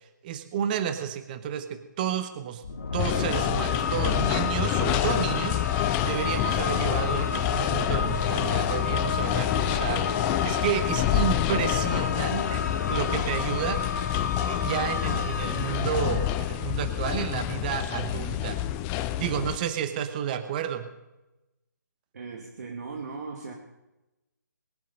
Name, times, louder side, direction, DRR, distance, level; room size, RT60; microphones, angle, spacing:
voice 1, 0.2-2.6 2.9-13.8 14.5-18.6 19.2-20.9, right 9 dB, 25° right, 10 dB, 1.1 m, -31 dB
sound 1, 2.6-17.0, left 5 dB, 60° left, 1.8 m, -32 dB
sound 2, 3.0-19.6, left 13 dB, 15° left, 0.4 m, -28 dB
voice 2, 22.1-23.5, right 4 dB, 60° right, 1 dB, 2.2 m, -38 dB
22.0 x 7.5 x 5.5 m, 1.0 s
figure-of-eight pair, 155°, 10 cm